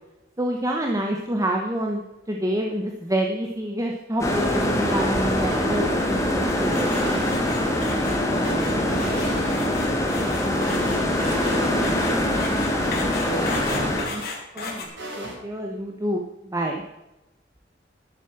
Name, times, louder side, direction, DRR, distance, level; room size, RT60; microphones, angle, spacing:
voice 1, 0.4-7.2 13.7-14.2 14.5-16.8, right 1 dB, 15° right, 1 dB, 1.1 m, -28 dB
sound 1, 4.2-14.0, left 1 dB, 15° left, 1.9 m, -23 dB
sound 2, 6.7-14.8, left 4 dB, 55° left, 2.7 m, -36 dB
sound 3, 6.8-7.7 8.0-9.9 10.2-11.7 12.0-12.1 12.4-14.2 14.6-15.4, right 1 dB, 80° right, 5.3 m, -36 dB
voice 2, 8.5-10.0 10.5-12.4 13.0-13.9, left 1 dB, 35° right, 0 dB, 3.1 m, -36 dB
11.0 x 9.4 x 6.2 m, 0.99 s
head